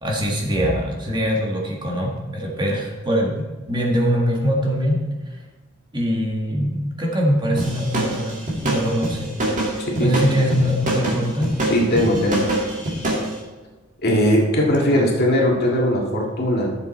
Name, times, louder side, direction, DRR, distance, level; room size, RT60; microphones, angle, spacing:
voice 1, 0.0-5.4 5.9-11.5, equal, 20° right, -1 dB, 1.6 m, -23 dB
sound 1, 7.6-13.3, right 1 dB, 40° right, 2.1 m, -24 dB
voice 2, 9.8-10.2 11.7-12.5 14.0-16.7, equal, 50° left, -1 dB, 1.9 m, -19 dB
11.5 x 7.0 x 4.3 m, 1.2 s
head